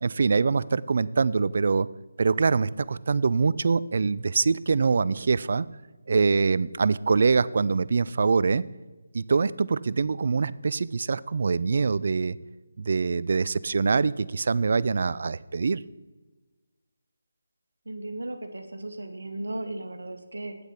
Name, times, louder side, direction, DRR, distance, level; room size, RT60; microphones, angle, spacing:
voice 1, 0.0-1.9 2.2-5.7 6.1-8.6 9.1-12.4 12.8-15.8, right 4 dB, 55° right, 18 dB, 0.4 m, -24 dB
voice 2, 17.8-20.6, right 1 dB, 85° right, 6 dB, 1.3 m, -36 dB
8.6 x 8.1 x 5.8 m, 1.2 s
figure-of-eight pair, 160°, 0 cm